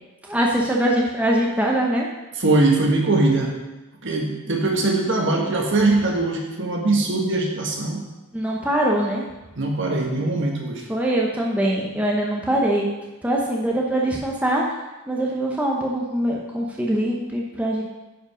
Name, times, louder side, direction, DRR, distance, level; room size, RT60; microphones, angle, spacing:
voice 1, 0.2-2.1 8.3-9.2 10.9-12.9 13.2-14.6 15.1-17.8, right 1 dB, 5° right, -3 dB, 0.8 m, -22 dB
voice 2, 2.4-3.5 4.0-8.0 9.6-10.8, right 2 dB, 55° right, 1 dB, 1.5 m, -21 dB
10.0 x 5.1 x 5.0 m, 1.1 s
head